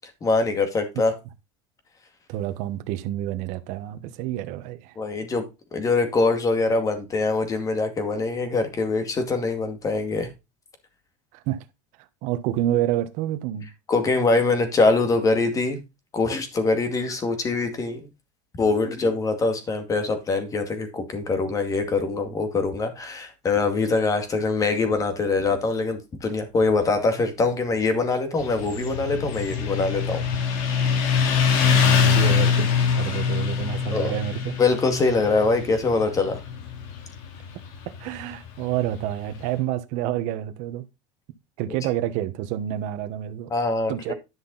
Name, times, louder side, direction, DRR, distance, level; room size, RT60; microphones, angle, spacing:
voice 1, 0.2-1.1 5.0-5.4 5.7-10.3 13.9-15.8 16.1-18.0 18.6-30.2 33.9-34.1 34.6-36.4 43.5-43.9, left 3 dB, 20° left, 2.2 m, -23 dB
voice 2, 2.3-5.0 11.3-11.6 12.2-13.7 31.7-34.6 37.9-40.8 41.6-43.5 43.9-44.1, right 12 dB, 55° right, 1.2 m, -28 dB
Motorcycle, 28.4-39.5, left 6 dB, 60° left, 2.4 m, -24 dB
11.0 x 5.9 x 4.1 m
supercardioid pair, 150°, 15 cm